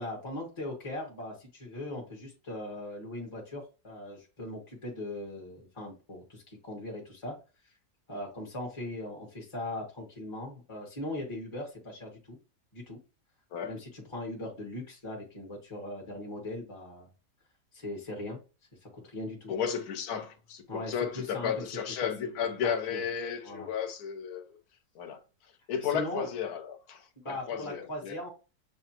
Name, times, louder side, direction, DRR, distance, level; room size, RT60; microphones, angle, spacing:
voice 1, 0.0-7.4 7.6-7.7 8.1-12.4 12.7-13.0 13.6-17.1 17.7-18.4 18.8-19.5 20.7-22.3 22.6-23.0 23.4-23.7 25.8-26.3 27.2-28.3, left 1 dB, 20° left, 0.9 m, -39 dB
voice 2, 19.5-24.4 25.0-25.2 25.7-27.0 27.3-28.2, left 7 dB, 70° left, 1.2 m, -33 dB
7.0 x 2.5 x 2.8 m
omnidirectional pair, 1.8 m